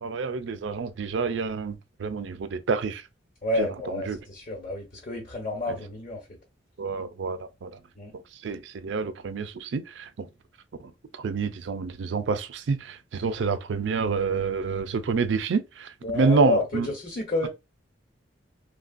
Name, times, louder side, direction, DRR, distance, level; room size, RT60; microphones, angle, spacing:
voice 1, 0.0-3.1 3.6-4.2 6.8-7.8 8.1-10.3 10.8-16.9, right 4 dB, 75° right, 0.4 m, -28 dB
voice 2, 3.4-6.3 7.9-8.1 16.0-17.5, left 2 dB, 45° left, 1.1 m, -30 dB
3.2 x 2.3 x 2.4 m
head